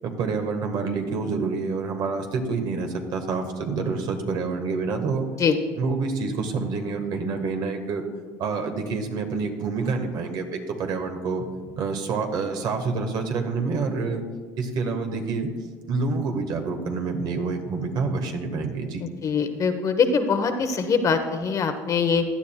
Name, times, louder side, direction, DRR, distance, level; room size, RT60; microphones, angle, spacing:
voice 1, 0.0-5.3 5.8-8.0 8.4-11.5 11.8-14.2 14.6-15.5 15.9-19.0, right 4 dB, 60° right, 5 dB, 1.5 m, -27 dB
voice 2, 19.2-22.2, left 5 dB, 40° left, 7 dB, 1.0 m, -23 dB
16.0 x 10.5 x 2.3 m, 1.5 s
supercardioid pair, 90°, 8 cm